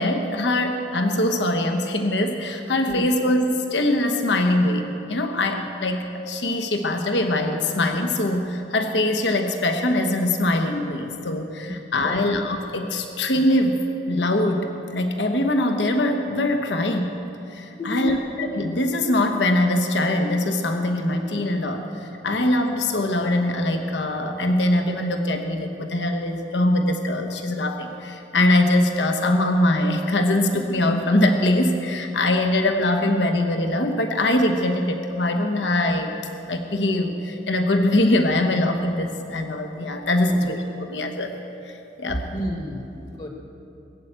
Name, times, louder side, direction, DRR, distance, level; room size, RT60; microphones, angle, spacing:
voice 1, 0.0-14.7 14.9-17.1 17.5-36.1 36.5-41.3 41.6-42.3, left 1 dB, 80° left, 5 dB, 1.1 m, -22 dB
voice 2, 11.7-12.3 17.8-18.2 40.2-40.5 42.3-42.9 43.2-43.3, left 1 dB, 35° left, 3 dB, 1.3 m, -31 dB
19.5 x 8.1 x 8.8 m, 2.9 s
head